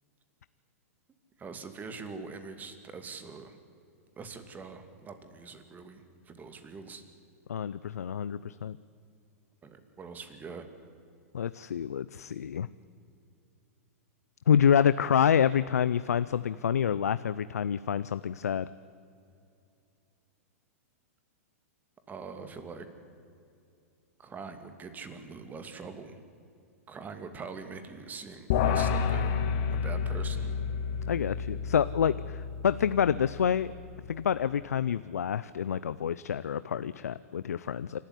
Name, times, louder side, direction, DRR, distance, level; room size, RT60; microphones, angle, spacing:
voice 1, 1.4-3.6 4.2-7.0 9.6-10.7 22.1-22.9 24.2-26.2 26.9-29.4 29.7-30.5, right 5 dB, 20° right, 9 dB, 2.4 m, -43 dB
voice 2, 7.5-8.8 11.3-12.7 14.5-18.7 31.1-33.7 34.1-38.0, left 8 dB, 85° left, 16 dB, 0.5 m, -27 dB
sound 1, 28.5-34.0, left 6 dB, 55° left, 1.9 m, -30 dB
27.5 x 12.5 x 9.8 m, 2.5 s
hypercardioid pair, 115°, 8 cm